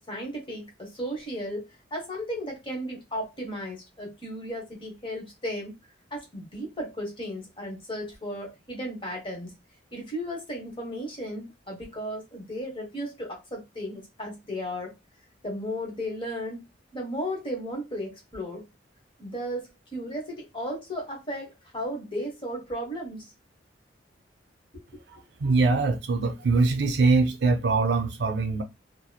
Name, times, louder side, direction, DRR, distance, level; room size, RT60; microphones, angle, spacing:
voice 1, 0.0-1.6 1.9-5.7 6.1-9.5 9.9-14.9 15.4-16.6 16.9-18.6 19.2-23.3 24.7-25.0, equal, 30° left, 1.1 m, -35 dB
voice 2, 25.1-28.6, right 3 dB, 65° right, 0.4 m, -23 dB
2.9 x 2.0 x 2.2 m
head